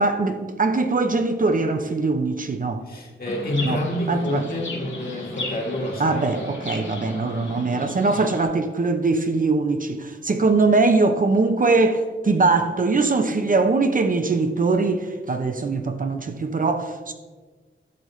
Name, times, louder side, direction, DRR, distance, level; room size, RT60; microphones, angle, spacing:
voice 1, 0.0-2.8 3.6-4.5 6.0-17.1, right 3 dB, 40° right, 0.6 m, -22 dB
voice 2, 2.9-6.4, left 1 dB, 45° left, 1.8 m, -28 dB
Chirp tweet, 3.2-8.4, left 2 dB, 60° left, 2.4 m, -35 dB
11.0 x 6.8 x 3.2 m
wide cardioid pair, 100°, 21 cm